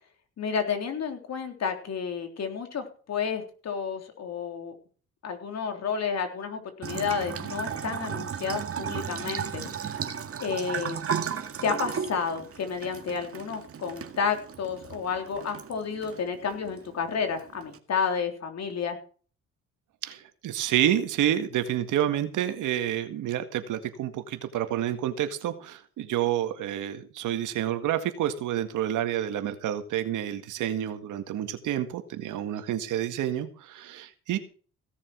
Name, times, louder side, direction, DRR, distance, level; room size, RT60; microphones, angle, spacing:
voice 1, 0.4-4.7 5.2-9.6 10.4-11.0 11.6-19.0, left 6 dB, 60° left, 5 dB, 3.6 m, -31 dB
Bathtub (filling or washing) / Trickle dribble, 6.8-17.8, right 7 dB, 50° right, 1.9 m, -35 dB
voice 2, 20.0-34.4, right 11 dB, 85° right, 9 dB, 1.9 m, -29 dB
17.0 x 7.4 x 6.2 m, 0.40 s
cardioid pair, 90°, 30 cm